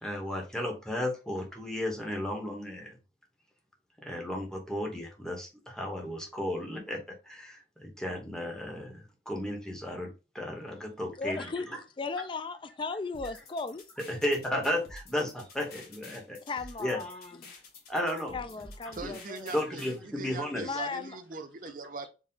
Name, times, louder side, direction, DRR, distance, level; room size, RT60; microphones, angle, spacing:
voice 1, 0.0-3.0 4.0-11.8 14.0-16.4 16.8-17.0 17.9-18.4 19.0-19.1 19.5-20.8, left 1 dB, 5° left, 1.0 m, -34 dB
voice 2, 11.2-11.7 12.0-13.8 16.4-17.4 18.3-19.5 20.6-21.2, left 4 dB, 25° left, 0.3 m, -36 dB
sound 1, 13.1-20.0, left 2 dB, 50° left, 1.3 m, -50 dB
voice 3, 18.9-22.1, right 3 dB, 45° right, 0.6 m, -41 dB
4.6 x 2.3 x 3.7 m
head